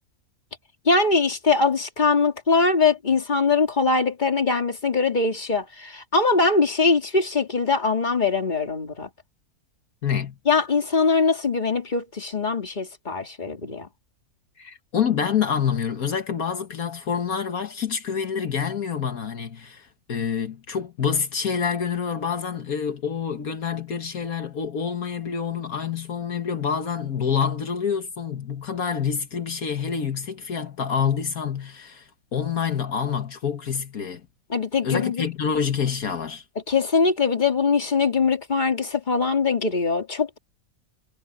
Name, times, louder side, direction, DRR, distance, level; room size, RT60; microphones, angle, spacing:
voice 1, 0.8-9.1 10.5-13.9 34.5-35.3 36.7-40.4, left 4 dB, 30° left, 2.5 m, -22 dB
voice 2, 10.0-10.4 14.6-34.2 34.8-36.4, left 7 dB, 75° left, 1.9 m, -27 dB
omnidirectional pair, 1.5 m